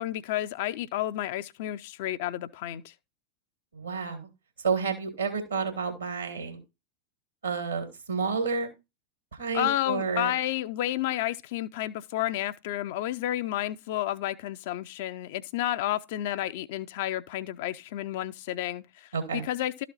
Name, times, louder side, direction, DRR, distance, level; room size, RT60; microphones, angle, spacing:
voice 1, 0.0-2.9 9.5-19.8, left 13 dB, 50° left, 0.5 m, -31 dB
voice 2, 3.7-4.3 4.6-6.6 7.4-8.7 9.3-10.3 19.1-19.5, right 5 dB, 75° right, 2.2 m, -30 dB
12.5 x 4.2 x 4.1 m
figure-of-eight pair, 90°, 0 cm